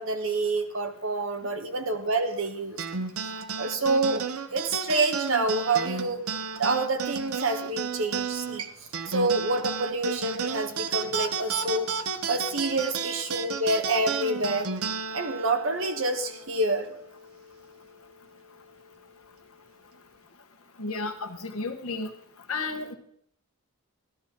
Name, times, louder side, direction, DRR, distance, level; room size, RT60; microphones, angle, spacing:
voice 1, 0.0-2.8 3.6-4.2 4.5-6.3 6.6-8.6 9.1-11.9 12.3-14.7 15.1-16.9, right 2 dB, 65° right, 7 dB, 1.2 m, -27 dB
sound 1, 2.8-17.5, right 5 dB, 80° right, 0.7 m, -33 dB
voice 2, 20.8-22.1 22.5-22.9, left 3 dB, 75° left, 6 dB, 1.3 m, -32 dB
13.0 x 12.5 x 3.7 m, 0.66 s
head